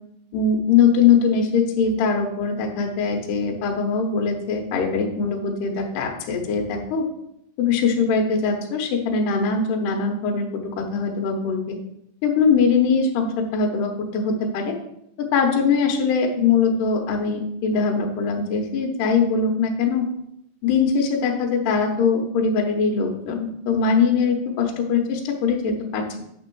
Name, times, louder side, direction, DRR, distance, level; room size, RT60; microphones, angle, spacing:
voice 1, 0.3-7.1 7.6-11.8 12.2-14.7 15.3-20.1 20.6-26.2, left 5 dB, 70° left, 2 dB, 2.3 m, -21 dB
8.5 x 3.6 x 6.1 m, 0.76 s
omnidirectional pair, 4.7 m